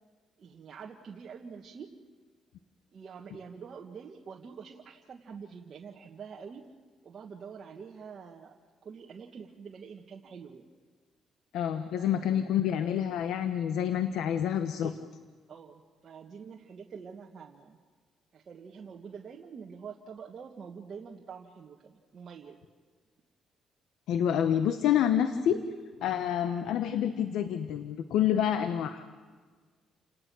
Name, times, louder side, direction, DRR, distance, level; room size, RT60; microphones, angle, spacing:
voice 1, 0.4-1.9 2.9-6.7 7.0-8.5 8.8-10.7 11.9-12.5 14.7-15.1 15.5-17.8 18.3-22.6, right 6 dB, 50° right, 0 dB, 1.6 m, -46 dB
voice 2, 11.5-14.9 24.1-25.6 26.0-29.0, left 9 dB, 85° left, 9 dB, 1.0 m, -28 dB
30.0 x 18.5 x 6.3 m, 1.5 s
cardioid pair, 90°, 0 cm